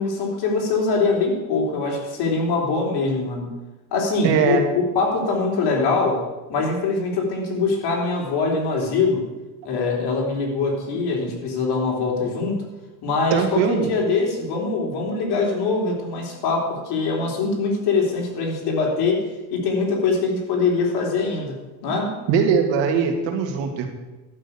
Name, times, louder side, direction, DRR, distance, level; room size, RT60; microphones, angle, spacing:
voice 1, 0.0-3.5 3.9-9.3 9.6-12.6 13.0-22.2, left 4 dB, 60° left, -1 dB, 3.8 m, -23 dB
voice 2, 4.2-4.6 13.3-14.0 22.3-23.9, right 6 dB, 70° right, 4 dB, 2.3 m, -20 dB
12.0 x 6.3 x 8.7 m, 1.1 s
cardioid pair, 130°, 45 cm